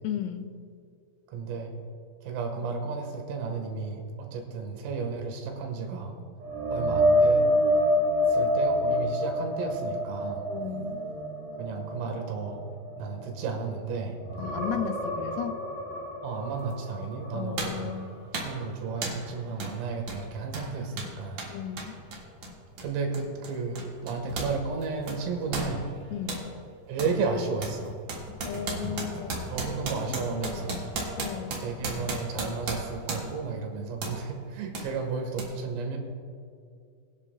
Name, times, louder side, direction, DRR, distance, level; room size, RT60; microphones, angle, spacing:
voice 1, 0.0-0.5 10.5-11.0 14.4-15.6 17.3-18.1 21.5-22.0 26.1-26.4 28.4-29.3 30.1-30.7 31.2-31.6, left 9 dB, 90° left, 9 dB, 3.4 m, -35 dB
voice 2, 1.3-1.7 2.2-6.2 6.7-7.5 8.3-10.5 11.6-12.6 13.0-14.2 16.2-17.9 18.3-21.4 22.8-25.9 26.9-28.0 29.5-30.8 31.6-36.0, right 4 dB, 85° right, 3 dB, 4.1 m, -33 dB
sound 1, 6.4-13.8 14.2-18.0 18.4-18.6 22.0-22.1, equal, 35° right, 3.6 m, -27 dB
sound 2, 16.7-16.8 17.6-17.9 18.3-18.6 19.0-19.3 19.6-19.8 20.0-24.6 24.8-26.5 27.0-27.2 27.6-33.5 34.0-34.2 34.7-34.9 35.4-35.5, right 2 dB, 55° right, 1.9 m, -35 dB
22.5 x 10.5 x 2.3 m, 2.3 s
omnidirectional pair, 5.9 m